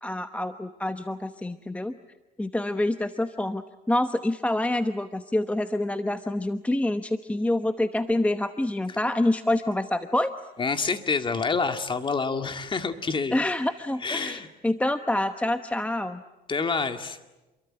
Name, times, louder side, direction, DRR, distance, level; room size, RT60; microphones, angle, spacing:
voice 1, 0.0-1.9 2.4-10.4 13.3-16.2, left 1 dB, 10° left, 9 dB, 1.0 m, -27 dB
voice 2, 10.6-13.4 14.0-14.5 16.5-17.2, left 4 dB, 30° left, 7 dB, 2.3 m, -27 dB
28.5 x 23.0 x 8.9 m, 1.0 s
cardioid pair, 110°, 17 cm